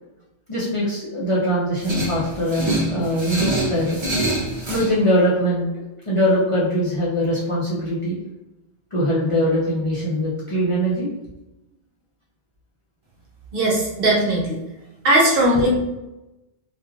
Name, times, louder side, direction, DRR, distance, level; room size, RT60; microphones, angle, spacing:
voice 1, 0.5-4.0 4.7-5.7 6.1-8.2 8.9-11.1 15.5-15.6, equal, 35° left, -8 dB, 0.7 m, -22 dB
sound 1, 1.8-4.9, right 1 dB, 35° right, 0.5 m, -25 dB
voice 2, 13.5-14.6 15.0-15.7, right 1 dB, 60° right, -3 dB, 0.8 m, -18 dB
3.0 x 2.4 x 2.4 m, 0.98 s
omnidirectional pair, 1.2 m